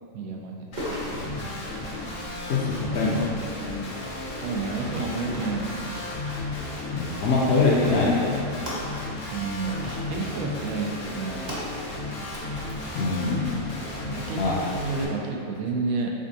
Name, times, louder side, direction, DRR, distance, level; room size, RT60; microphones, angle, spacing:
voice 1, 0.1-0.7 1.0-1.5 4.3-6.0 9.3-11.7 14.1-16.1, right 3 dB, 80° right, 0 dB, 1.0 m, -31 dB
Guitar, 0.7-15.1, left 2 dB, 85° left, 1.2 m, -34 dB
sound 1, 0.8-14.0, equal, 40° right, 0.9 m, -41 dB
voice 2, 2.5-3.3 6.9-8.4 12.9-13.6 14.4-14.5, left 3 dB, 65° left, -4 dB, 0.7 m, -23 dB
5.1 x 3.4 x 2.7 m, 2.4 s
omnidirectional pair, 1.5 m